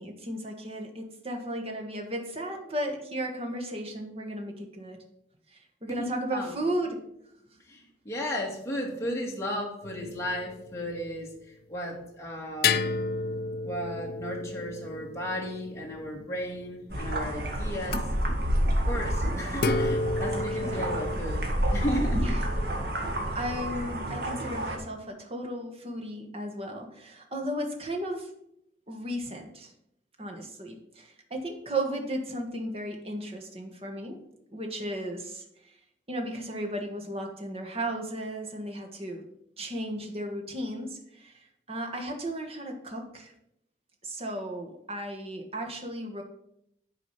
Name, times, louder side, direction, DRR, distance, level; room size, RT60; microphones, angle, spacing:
voice 1, 0.0-5.0 5.5-7.0 20.5-21.2 22.1-22.5 22.9-28.3 28.9-29.7 30.2-34.2 34.5-35.7 36.1-39.2 39.6-41.4 41.7-43.3 44.0-46.2, right 1 dB, 35° right, 2 dB, 1.4 m, -35 dB
voice 2, 5.9-6.5 7.7-7.8 8.1-11.3 11.7-12.9 13.6-18.0 18.9-21.4 21.7-22.3, equal, 15° left, -2 dB, 2.1 m, -34 dB
sound 1, 9.8-11.0 12.6-16.4 17.8-18.0 19.6-21.2, left 4 dB, 55° left, 0.4 m, -31 dB
sound 2, 16.9-24.8, equal, 60° right, 1.9 m, -29 dB
9.8 x 5.0 x 5.8 m, 0.76 s
head